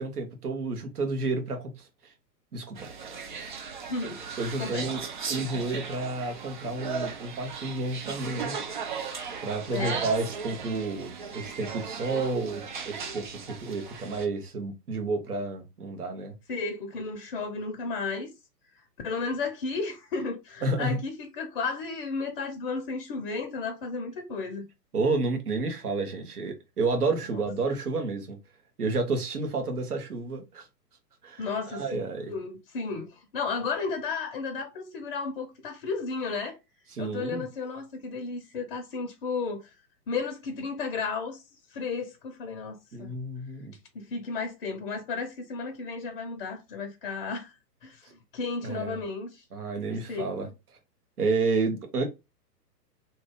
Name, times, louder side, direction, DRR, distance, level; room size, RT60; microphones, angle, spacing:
voice 1, 0.0-1.7 2.5-2.9 3.4-3.6 4.4-5.0 5.3-8.5 9.4-16.3 20.6-21.0 24.9-28.4 28.8-30.7 31.2-32.3 36.9-37.4 42.9-43.7 48.6-49.0 49.5-50.5 51.2-52.0, right 3 dB, 60° right, 1.4 m, -30 dB
sound 1, 2.8-14.3, right 6 dB, 30° right, 0.5 m, -37 dB
voice 2, 3.9-4.2 4.6-4.9 9.7-10.1 16.5-18.3 19.0-24.7 27.3-27.4 31.4-32.0 32.3-36.6 37.0-39.7 40.1-41.4 41.7-43.1 43.9-47.5 47.8-49.4 49.9-50.3, left 4 dB, 35° left, 0.7 m, -33 dB
3.0 x 2.8 x 3.6 m
figure-of-eight pair, 120°, 50 cm